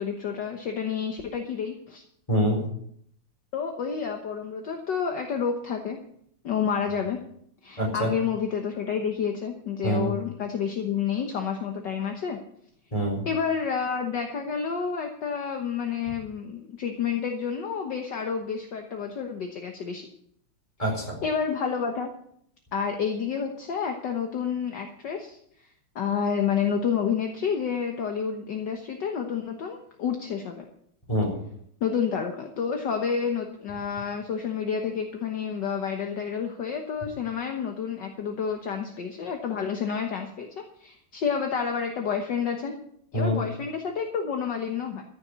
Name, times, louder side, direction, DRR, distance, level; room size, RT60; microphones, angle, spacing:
voice 1, 0.0-2.0 3.5-6.0 6.4-7.2 7.6-12.4 13.2-20.1 21.2-22.1 22.7-25.4 25.9-30.6 31.8-42.7 43.1-45.0, left 6 dB, 60° left, 4 dB, 1.7 m, -29 dB
voice 2, 2.3-2.6 7.8-8.1 9.8-10.1 12.9-13.3 20.8-21.1 31.1-31.3 43.1-43.4, equal, 15° left, 0 dB, 4.4 m, -25 dB
14.0 x 7.1 x 8.2 m, 0.69 s
omnidirectional pair, 2.4 m